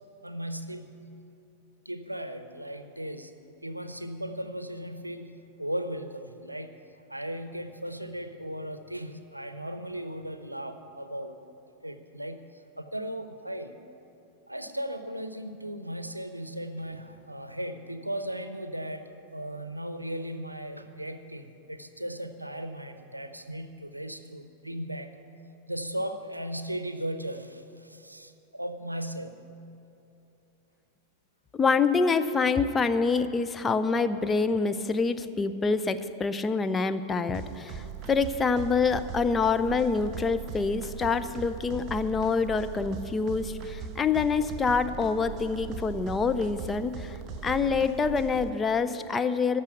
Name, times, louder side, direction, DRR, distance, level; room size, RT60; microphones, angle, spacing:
voice 1, 0.2-0.9 1.8-3.3 3.6-6.7 7.1-11.4 11.8-13.8 14.5-25.1 25.7-29.4, right 1 dB, 85° right, 9 dB, 0.6 m, -37 dB
voice 2, 31.5-47.2 47.4-49.6, left 4 dB, 15° left, 11 dB, 0.5 m, -26 dB
sound 1, 37.3-48.5, right 6 dB, 30° right, 1.0 m, -39 dB
14.0 x 6.2 x 9.1 m, 2.7 s
figure-of-eight pair, 90°, 0 cm